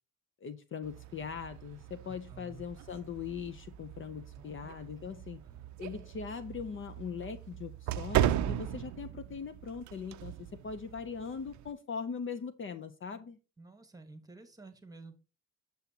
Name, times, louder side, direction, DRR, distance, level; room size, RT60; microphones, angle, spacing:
voice 1, 0.4-5.4 5.8-13.4, left 6 dB, 40° left, 12 dB, 0.6 m, -40 dB
sound 1, 0.8-11.7, right 12 dB, 70° right, 0.5 m, -37 dB
voice 2, 2.0-2.6 4.4-4.7 5.4-5.8 13.6-15.2, right 3 dB, 10° right, 8 dB, 1.3 m, -52 dB
7.6 x 7.0 x 2.8 m, 0.32 s
cardioid pair, 90°, 30 cm